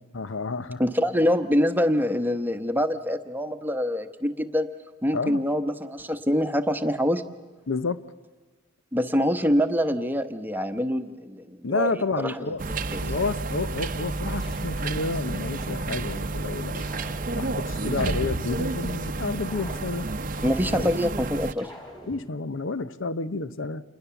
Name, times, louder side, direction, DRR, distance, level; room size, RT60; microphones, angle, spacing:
voice 1, 0.1-0.8 5.1-5.4 7.7-8.0 11.6-12.6 12.9-16.9 17.3-21.0 22.1-23.8, left 3 dB, 75° left, 14 dB, 0.8 m, -30 dB
voice 2, 0.8-4.7 5.0-7.2 8.9-12.4 12.9-13.0 20.4-21.7, equal, 10° right, 8 dB, 1.0 m, -25 dB
sound 1, 12.6-21.5, right 2 dB, 40° right, 0.7 m, -30 dB
sound 2, 14.4-15.1 15.6-16.3 16.8-18.7 19.2-21.1 21.6-22.3, equal, 20° left, 4.6 m, -44 dB
28.0 x 21.0 x 7.0 m, 1.3 s
head